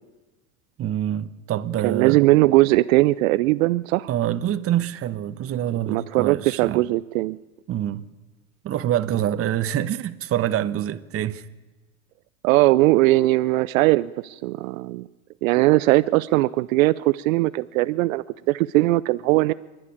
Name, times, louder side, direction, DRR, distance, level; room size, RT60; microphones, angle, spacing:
voice 1, 0.8-2.2 4.1-6.9 7.7-8.1 8.6-11.5, right 11 dB, 35° right, 1.1 m, -26 dB
voice 2, 1.8-4.1 5.9-7.4 12.4-15.1 15.4-19.5, right 19 dB, 75° right, 0.6 m, -19 dB
28.0 x 11.0 x 8.6 m
hypercardioid pair, 105°, 41 cm